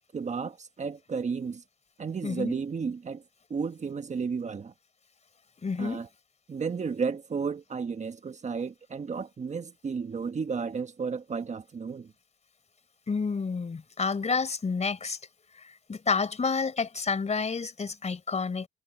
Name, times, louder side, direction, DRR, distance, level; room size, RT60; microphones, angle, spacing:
voice 1, 0.1-1.6 2.0-3.2 3.5-4.7 5.8-6.1 6.5-12.1, right 5 dB, 35° right, 1.3 m, -33 dB
voice 2, 2.2-2.6 5.6-6.0 13.1-15.2 15.9-18.7, left 5 dB, 35° left, 4.0 m, -29 dB
cardioid pair, 90°, 20 cm